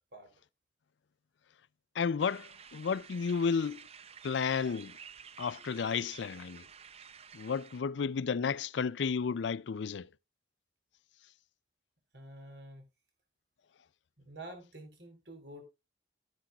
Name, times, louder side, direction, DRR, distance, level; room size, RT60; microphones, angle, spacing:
voice 1, 1.9-3.9 4.2-5.0 5.4-6.7 7.3-10.1, left 6 dB, 80° left, 0.4 m, -32 dB
sound 1, 2.2-7.8, right 7 dB, 35° right, 0.6 m, -51 dB
voice 2, 12.1-12.8 14.2-15.6, right 1 dB, 65° right, 3.8 m, -49 dB
13.0 x 10.0 x 2.4 m
head